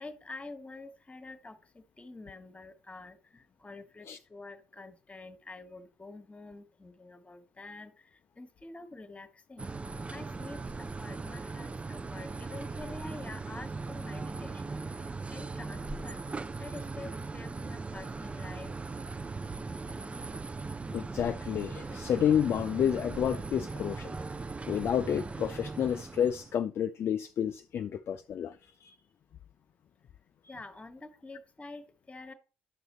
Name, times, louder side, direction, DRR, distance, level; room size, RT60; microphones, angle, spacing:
voice 1, 0.0-9.7 10.1-16.2 16.6-18.7 19.9-20.2 30.5-32.3, left 2 dB, 20° left, 1.4 m, -47 dB
sound 1, 9.6-26.6, right 3 dB, 20° right, 0.5 m, -39 dB
voice 2, 20.9-24.2 24.7-29.0 30.4-30.5, left 9 dB, 45° left, 0.4 m, -30 dB
11.5 x 6.2 x 3.1 m
figure-of-eight pair, 45°, 6 cm